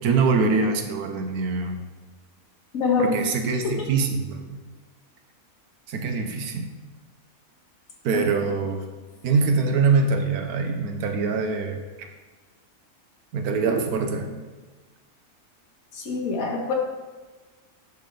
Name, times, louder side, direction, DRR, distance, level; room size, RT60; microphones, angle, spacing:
voice 1, 0.0-1.8 3.0-4.6 5.9-6.7 8.0-8.9 9.2-12.1 13.3-14.3, right 4 dB, 90° right, 6 dB, 1.3 m, -24 dB
voice 2, 2.7-3.2 3.6-3.9 8.1-8.2 15.9-16.7, left 4 dB, 70° left, -1 dB, 1.6 m, -25 dB
10.5 x 6.1 x 3.3 m, 1.3 s
omnidirectional pair, 1.5 m